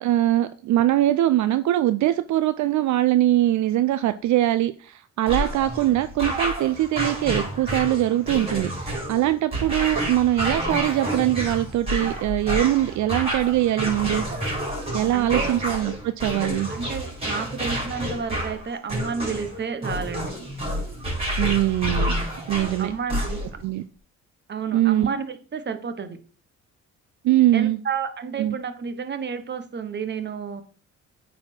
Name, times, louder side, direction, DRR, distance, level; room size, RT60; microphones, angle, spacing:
voice 1, 0.0-14.2 14.9-16.7 21.4-22.2 22.5-22.9 23.6-23.8 24.7-25.1 27.2-27.8 28.4-28.6, right 14 dB, 70° right, 12 dB, 0.5 m, -22 dB
sound 1, 5.3-23.6, equal, 20° right, 4.0 m, -29 dB
voice 2, 15.1-15.6 16.7-20.4 22.8-23.4 24.5-26.2 27.5-30.6, right 6 dB, 35° right, 10 dB, 1.0 m, -31 dB
8.7 x 4.2 x 4.4 m, 0.40 s
cardioid pair, 90°, 30 cm